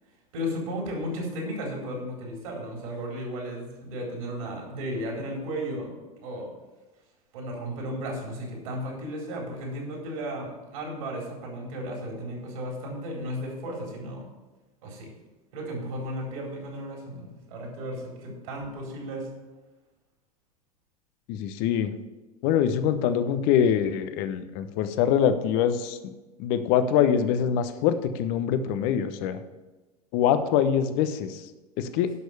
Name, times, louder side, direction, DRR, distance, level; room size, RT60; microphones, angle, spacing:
voice 1, 0.3-5.9 6.2-6.5 7.3-14.3 14.8-15.1 15.5-19.3, equal, 65° right, -1 dB, 4.5 m, -34 dB
voice 2, 21.3-21.9 22.4-26.0 26.4-29.4 30.1-31.4 31.8-32.1, left 8 dB, 55° left, 11 dB, 1.0 m, -24 dB
11.0 x 6.4 x 6.8 m, 1.1 s
figure-of-eight pair, 80°, 19 cm